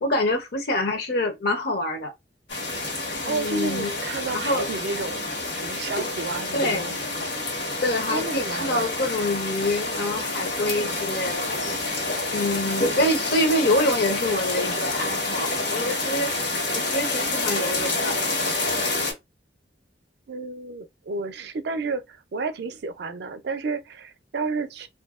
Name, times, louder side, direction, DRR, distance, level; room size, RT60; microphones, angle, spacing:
voice 1, 0.0-2.1 3.3-3.9 4.3-4.7 6.5-6.9 7.8-11.5 12.3-18.1, left 1 dB, 60° left, 0.7 m, -26 dB
sound 1, 2.5-19.1, left 2 dB, 80° left, 1.3 m, -28 dB
voice 2, 3.3-5.2 5.6-7.0 8.1-9.1 12.8-13.1 20.3-24.9, right 4 dB, 65° right, 0.4 m, -31 dB
2.7 x 2.6 x 2.3 m
head